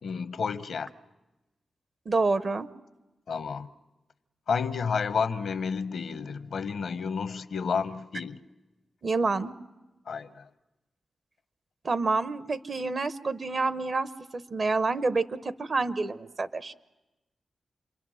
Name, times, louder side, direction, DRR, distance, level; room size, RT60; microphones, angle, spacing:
voice 1, 0.0-0.9 3.3-3.7 4.5-8.4 10.1-10.5, left 5 dB, 75° left, 13 dB, 0.8 m, -31 dB
voice 2, 2.1-2.7 9.0-9.5 11.8-16.7, right 3 dB, 55° right, 14 dB, 0.9 m, -28 dB
28.5 x 23.0 x 6.3 m, 1.0 s
supercardioid pair, 45°, 0 cm